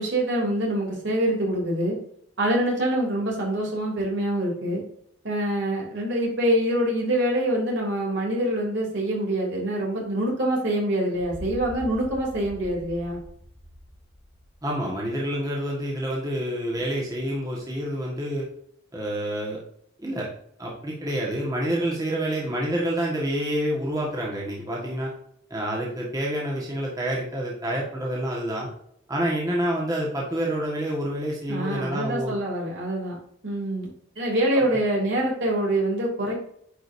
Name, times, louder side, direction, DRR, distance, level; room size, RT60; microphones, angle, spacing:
voice 1, 0.0-2.0 2.4-4.8 5.2-13.2 31.5-33.2 33.4-33.9 34.1-36.4, right 1 dB, 65° right, -3 dB, 3.2 m, -25 dB
sound 1, 11.1-15.0, left 1 dB, 10° left, 1.4 m, -42 dB
voice 2, 14.6-18.4 18.9-19.6 20.0-20.3 20.6-25.1 25.5-28.7 29.1-32.3, right 1 dB, 20° right, -4 dB, 1.6 m, -28 dB
9.7 x 5.1 x 2.7 m, 0.68 s
head